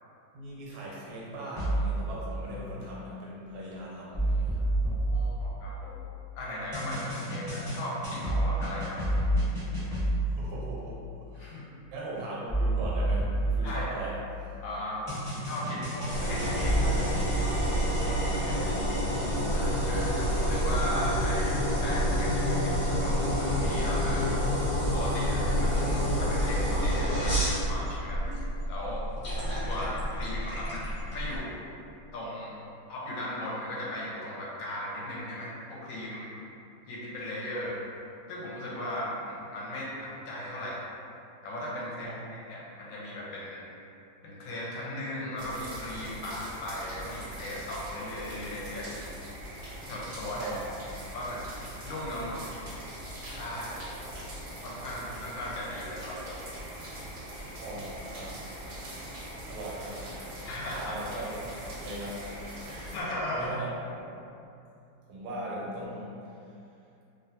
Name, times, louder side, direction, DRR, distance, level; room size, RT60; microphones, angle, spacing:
voice 1, 0.3-4.7 10.4-11.0 11.3-11.6 11.9-14.2 18.5-19.4 29.4-29.5 42.0-42.2 50.3-51.0 54.0-54.2 57.6-58.3 59.5-60.4 60.8-63.0 63.3-64.2 65.1-66.2, right 1 dB, 85° right, -5 dB, 1.5 m, -39 dB
sound 1, 1.5-2.1 4.1-6.0 6.7-10.5 12.5-14.4 15.1-17.3, right 1 dB, 15° right, 0.6 m, -29 dB
voice 2, 4.9-6.0 6.3-9.1 11.4-11.6 13.6-13.9 14.6-16.9 18.4-18.7 19.5-24.4 24.9-28.2 28.7-29.0 29.7-31.6 32.1-32.5 32.9-36.3 36.9-37.8 38.3-40.8 41.4-43.6 44.2-48.9 49.9-50.5 51.1-52.5 53.3-53.8 54.6-56.4 60.5-60.9 62.9-63.5, left 1 dB, 80° left, -5 dB, 1.3 m, -37 dB
sound 2, 16.1-31.4, equal, 45° left, 0.9 m, -28 dB
sound 3, 45.4-63.0, right 1 dB, 65° right, 0.9 m, -42 dB
3.3 x 2.1 x 2.7 m, 2.6 s
omnidirectional pair, 2.2 m